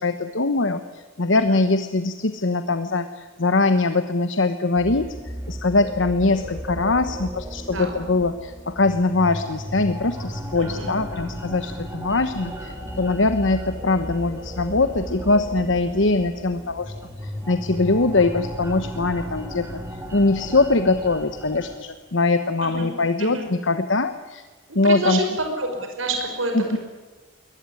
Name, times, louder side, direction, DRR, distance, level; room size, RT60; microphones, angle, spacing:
voice 1, 0.0-5.1 5.5-16.9 17.2-19.8 20.1-24.4 24.7-25.2 26.5-26.8, left 3 dB, 70° left, 9 dB, 1.1 m, -22 dB
sound 1, 4.8-21.8, equal, 15° right, 3.4 m, -35 dB
voice 2, 10.6-11.0 22.6-22.9 23.2-23.5 24.8-26.8, right 2 dB, 85° right, 4 dB, 5.5 m, -28 dB
22.5 x 19.5 x 9.8 m, 1.3 s
head